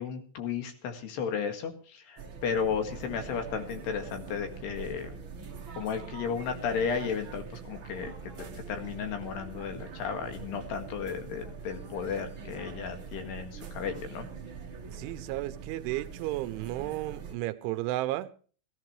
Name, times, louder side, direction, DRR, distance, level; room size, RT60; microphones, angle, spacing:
voice 1, 0.0-5.1 5.8-8.1 8.4-14.3, left 6 dB, 65° left, 3.7 m, -34 dB
sound 1, 2.2-17.3, right 6 dB, 65° right, 1.2 m, -43 dB
voice 2, 14.9-18.3, right 16 dB, 85° right, 3.2 m, -33 dB
18.0 x 15.5 x 3.2 m
omnidirectional pair, 5.4 m